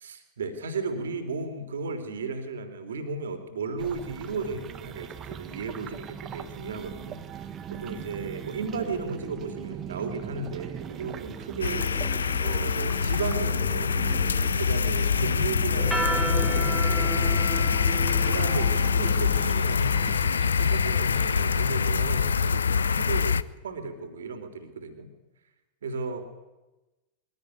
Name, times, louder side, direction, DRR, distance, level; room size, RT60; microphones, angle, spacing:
voice 1, 0.0-11.9 12.4-14.0 14.6-17.1 18.2-25.1 25.8-26.2, right 4 dB, 65° right, 8 dB, 3.6 m, -35 dB
sound 1, 3.8-22.5, right 9 dB, 30° right, 1.7 m, -39 dB
sound 2, 11.6-23.4, left 6 dB, 70° left, 0.7 m, -25 dB
sound 3, 15.8-20.5, right 3 dB, 5° right, 2.0 m, -33 dB
23.0 x 17.5 x 9.7 m, 1.1 s
figure-of-eight pair, 90°, 0 cm